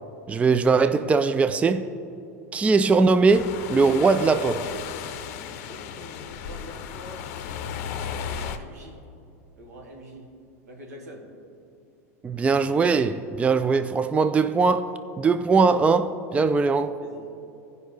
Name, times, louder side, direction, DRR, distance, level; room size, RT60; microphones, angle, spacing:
voice 1, 0.3-1.9 2.5-4.7 12.2-14.9 15.2-16.9, right 4 dB, 15° right, 0.3 m, -21 dB
sound 1, 3.3-8.6, left 8 dB, 60° left, 0.6 m, -35 dB
voice 2, 5.6-7.4 8.2-9.0 9.6-10.3 10.6-11.3 17.0-17.3, equal, 85° right, 1.9 m, -45 dB
16.0 x 5.4 x 3.3 m
hypercardioid pair, 100°, 8 cm